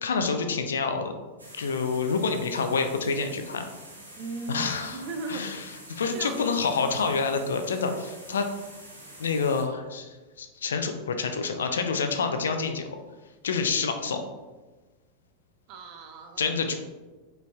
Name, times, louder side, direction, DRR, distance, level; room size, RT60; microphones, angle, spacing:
voice 1, 0.0-1.1 1.5-3.7 4.5-8.5 9.2-12.9 13.4-14.2 16.4-16.7, left 5 dB, 65° left, 6 dB, 0.4 m, -28 dB
sound 1, 1.4-9.6, right 1 dB, 80° right, 0.9 m, -47 dB
voice 2, 4.2-5.6 6.1-6.5 15.7-16.4, right 2 dB, 40° right, 5 dB, 0.5 m, -37 dB
4.9 x 3.2 x 2.3 m, 1.2 s
figure-of-eight pair, 90°, 0 cm